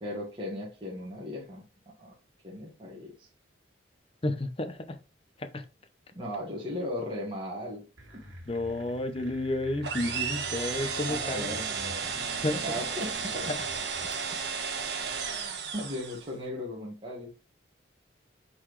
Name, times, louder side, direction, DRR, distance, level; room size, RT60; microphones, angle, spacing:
voice 1, 0.0-2.1 2.4-3.3 6.1-7.8 8.1-8.2 11.1-12.2 12.6-13.5 15.7-17.3, left 1 dB, 25° right, 1.6 m, -37 dB
voice 2, 4.2-5.0 5.4-5.6 8.5-11.6 12.4-12.8 13.5-13.6, left 1 dB, 30° left, 0.7 m, -31 dB
sound 1, 8.0-14.3, right 1 dB, 85° right, 1.6 m, -48 dB
sound 2, 9.8-16.3, right 6 dB, 60° right, 1.3 m, -33 dB
7.8 x 4.0 x 3.2 m
head